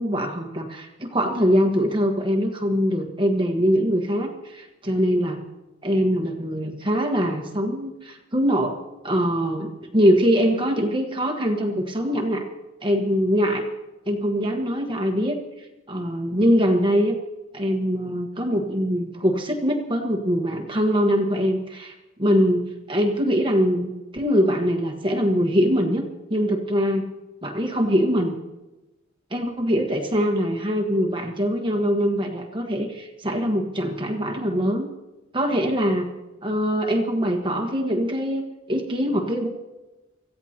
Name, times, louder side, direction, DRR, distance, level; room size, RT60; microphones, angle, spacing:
voice 1, 0.0-5.4 5.8-8.8 9.0-12.5 12.8-13.7 14.1-17.1 17.5-21.9 22.2-26.0 26.3-27.1 27.4-28.3 29.3-34.9 35.3-36.1 36.4-39.5, equal, 25° right, 2 dB, 1.4 m, -23 dB
26.0 x 15.5 x 2.9 m, 1.0 s
head